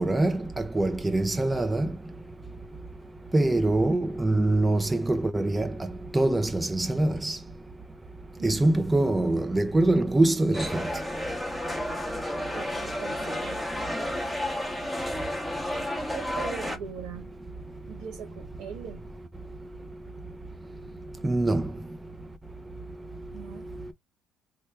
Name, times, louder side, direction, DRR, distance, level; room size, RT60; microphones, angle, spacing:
voice 1, 0.0-1.9 3.3-5.7 6.1-7.4 8.4-10.7 21.2-21.6, right 2 dB, 15° right, 0.6 m, -24 dB
voice 2, 8.4-9.1 12.4-13.7 16.1-17.4 17.9-19.0 23.3-23.7, right 7 dB, 75° right, 1.3 m, -41 dB
sound 1, 10.5-16.8, left 1 dB, 5° left, 1.0 m, -31 dB
3.2 x 2.2 x 3.5 m
supercardioid pair, 75°, 0 cm